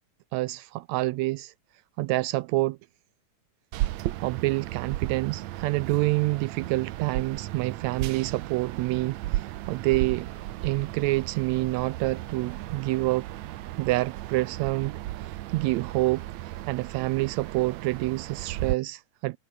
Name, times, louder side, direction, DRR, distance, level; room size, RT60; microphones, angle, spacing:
voice 1, 0.3-1.5 2.0-2.8 4.2-10.3 10.6-13.3 13.8-14.9 15.2-16.2 16.7-19.4, right 20 dB, 85° right, 1.5 m, -27 dB
sound 1, 3.7-18.8, right 15 dB, 70° right, 1.9 m, -35 dB
omnidirectional pair, 3.7 m